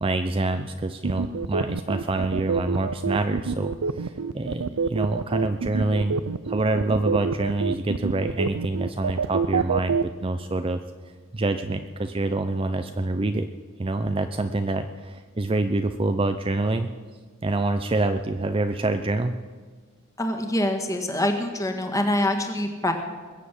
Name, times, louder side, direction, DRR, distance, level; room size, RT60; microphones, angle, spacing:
voice 1, 0.0-6.2 6.5-10.8 11.3-13.5 13.8-16.9 17.4-19.3, right 2 dB, 25° right, 8 dB, 0.5 m, -26 dB
sound 1, 1.0-10.0, right 5 dB, 90° right, 0.5 m, -26 dB
voice 2, 20.2-22.9, left 1 dB, 15° left, 5 dB, 1.6 m, -25 dB
21.0 x 7.6 x 8.5 m, 1.5 s
head